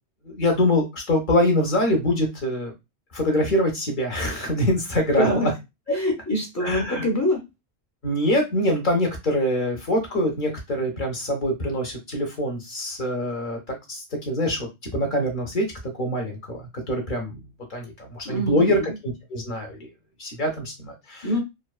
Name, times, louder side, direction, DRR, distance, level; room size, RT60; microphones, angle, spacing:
voice 1, 0.3-2.7 3.1-5.3 5.9-6.0 6.6-7.0 8.0-15.7 16.0-17.4 17.7-19.8 20.2-21.3, left 1 dB, 55° left, 1 dB, 0.7 m, -24 dB
voice 2, 5.2-5.5 5.9-7.5 18.2-18.9 21.2-21.4, left 1 dB, 25° left, 0 dB, 0.4 m, -25 dB
2.6 x 2.2 x 2.3 m, 0.22 s
omnidirectional pair, 1.1 m